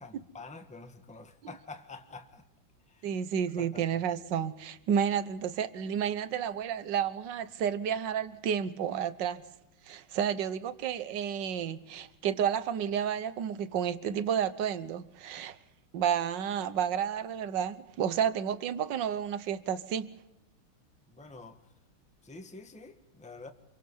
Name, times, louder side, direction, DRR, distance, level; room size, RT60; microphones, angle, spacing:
voice 1, 0.0-2.4 2.9-3.1 3.6-4.0 21.1-21.6 22.2-23.5, left 3 dB, 5° left, 6 dB, 1.4 m, -47 dB
voice 2, 3.0-9.4 9.9-15.6 15.9-20.1, right 8 dB, 60° right, 14 dB, 1.6 m, -31 dB
27.0 x 24.0 x 5.5 m, 0.90 s
omnidirectional pair, 2.4 m